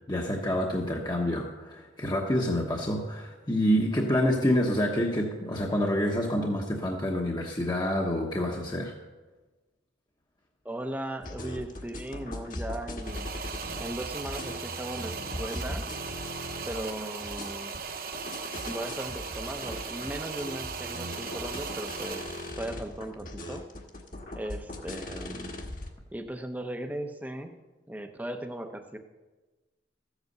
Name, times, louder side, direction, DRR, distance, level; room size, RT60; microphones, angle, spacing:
voice 1, 0.1-8.9, equal, 20° left, -1 dB, 1.0 m, -27 dB
voice 2, 10.6-13.3 13.8-15.9 16.6-17.8 18.7-22.3 22.6-23.6 24.4-25.6 26.1-27.5 27.9-29.0, right 1 dB, 10° right, 6 dB, 0.8 m, -37 dB
sound 1, 11.2-25.9, left 1 dB, 45° left, 1.5 m, -40 dB
sound 2, 13.0-22.6, right 6 dB, 50° right, 0.8 m, -38 dB
14.5 x 8.2 x 6.7 m, 1.2 s
head